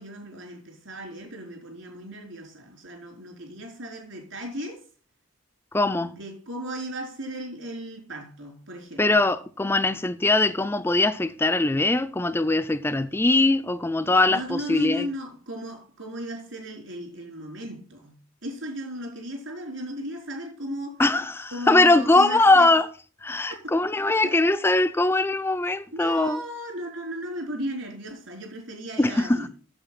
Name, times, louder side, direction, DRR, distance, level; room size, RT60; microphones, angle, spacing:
voice 1, 0.0-4.9 6.0-9.1 10.5-10.6 14.3-21.0 21.5-22.8 23.5-23.8 24.2-24.4 25.9-29.5, equal, 75° right, 4.3 m, -36 dB
voice 2, 5.7-6.2 9.0-15.1 21.0-22.9 23.2-26.4 29.0-29.5, left 2 dB, 10° left, 0.4 m, -21 dB
7.9 x 7.6 x 5.8 m
head